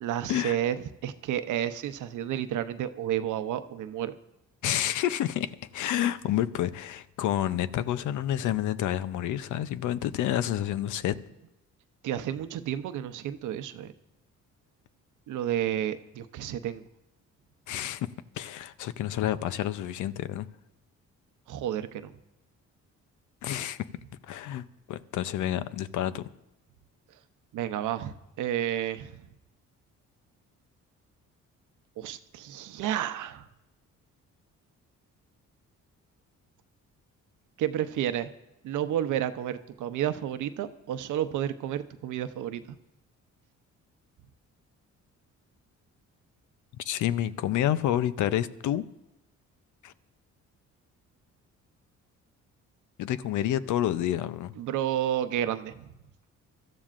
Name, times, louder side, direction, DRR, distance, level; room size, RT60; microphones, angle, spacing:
voice 1, 0.0-4.2 12.0-13.9 15.3-16.8 21.5-22.1 27.5-29.2 32.0-33.5 37.6-38.3 38.6-42.8 54.6-55.9, right 11 dB, 80° right, 0.8 m, -31 dB
voice 2, 4.6-11.2 17.7-18.1 18.4-20.5 23.4-23.9 24.3-26.3 46.8-48.8 49.8-49.9 53.0-54.5, left 12 dB, 80° left, 0.6 m, -29 dB
25.0 x 13.5 x 2.5 m
cardioid pair, 90°, 30 cm